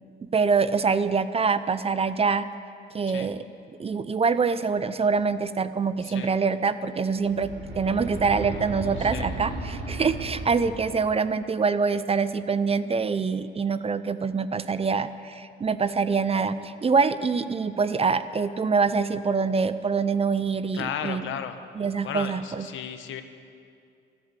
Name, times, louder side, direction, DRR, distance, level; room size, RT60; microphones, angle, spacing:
voice 1, 0.3-2.5 2.9-3.4 3.8-21.3 21.8-22.7, right 5 dB, 30° right, 13 dB, 0.6 m, -25 dB
sound 1, 7.1-11.1, right 2 dB, 80° right, 3.7 m, -35 dB
voice 2, 20.7-21.6 22.0-23.2, left 8 dB, 80° left, 8 dB, 1.2 m, -34 dB
13.5 x 12.5 x 8.3 m, 2.4 s
cardioid pair, 90°, 20 cm